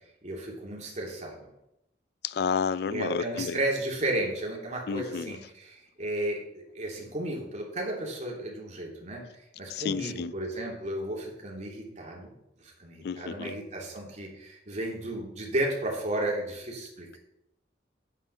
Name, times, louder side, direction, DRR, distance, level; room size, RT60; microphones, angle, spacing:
voice 1, 0.2-1.5 2.9-9.2 9.6-12.4 12.6-17.2, right 1 dB, 45° right, 3.2 m, -33 dB
voice 2, 2.2-3.6 4.9-5.4 9.7-10.3 13.0-13.6, left 6 dB, 65° left, 0.4 m, -31 dB
9.8 x 9.0 x 5.6 m
head